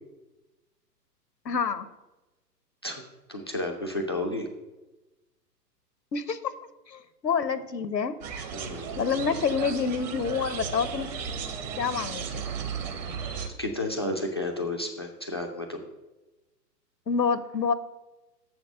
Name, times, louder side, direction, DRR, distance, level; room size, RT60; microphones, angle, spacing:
voice 1, 1.4-1.9 6.1-6.4 6.9-8.2 9.0-11.1 11.8-12.4 17.1-17.7, left 5 dB, 80° left, 14 dB, 0.8 m, -27 dB
voice 2, 3.3-4.5 8.5-9.0 13.6-15.9, left 1 dB, 20° left, 3 dB, 0.3 m, -32 dB
sound 1, 8.2-13.5, right 6 dB, 25° right, 0.9 m, -35 dB
7.3 x 5.9 x 6.5 m, 1.1 s
figure-of-eight pair, 110°, 50 cm